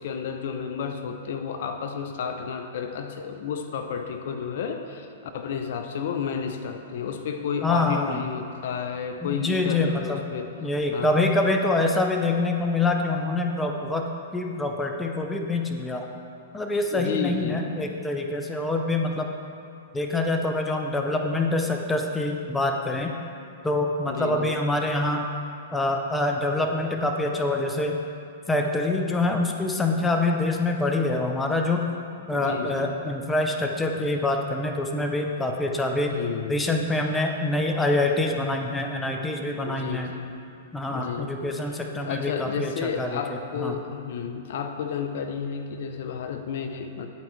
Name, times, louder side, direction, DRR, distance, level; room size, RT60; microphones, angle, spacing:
voice 1, 0.0-10.5 10.9-11.2 16.9-17.7 24.1-24.6 30.0-30.1 32.3-32.9 36.1-36.7 39.5-40.4 40.9-41.6 42.0-47.1, left 6 dB, 65° left, 6 dB, 0.5 m, -32 dB
voice 2, 7.6-8.2 9.2-10.2 10.6-14.1 14.3-16.1 16.5-19.3 19.9-23.1 23.6-25.3 25.7-28.0 28.5-31.9 32.3-36.2 36.5-40.1 40.7-43.7, left 2 dB, 10° left, 2 dB, 0.6 m, -25 dB
11.0 x 4.4 x 3.2 m, 2.7 s
hypercardioid pair, 120°, 0 cm